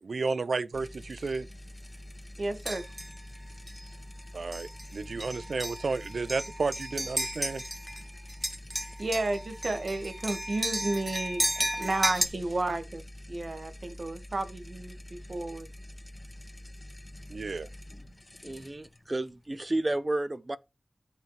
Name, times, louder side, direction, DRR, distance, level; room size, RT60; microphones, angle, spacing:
voice 1, 0.0-1.5 4.3-7.6 17.3-17.7, right 4 dB, 90° right, 0.6 m, -32 dB
sound 1, 0.7-20.0, left 1 dB, 30° left, 1.6 m, -46 dB
voice 2, 2.4-2.9 9.0-13.0 13.3-15.7, right 2 dB, 65° right, 1.9 m, -32 dB
sound 2, 2.7-3.2 3.7-3.8 4.5-4.9 5.2-8.0 8.3-12.3, equal, 10° right, 1.4 m, -33 dB
voice 3, 18.4-20.6, right 2 dB, 35° right, 0.9 m, -31 dB
13.5 x 5.9 x 3.3 m
wide cardioid pair, 55°, 0 cm